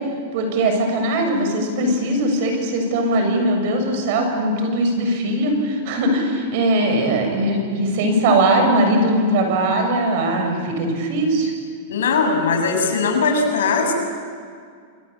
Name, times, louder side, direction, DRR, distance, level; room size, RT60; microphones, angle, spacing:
voice 1, 0.3-11.5, right 1 dB, 55° right, 4 dB, 7.5 m, -20 dB
voice 2, 11.9-13.9, left 4 dB, 90° left, 4 dB, 6.8 m, -19 dB
28.0 x 24.0 x 8.7 m, 2.1 s
supercardioid pair, 145°, 0 cm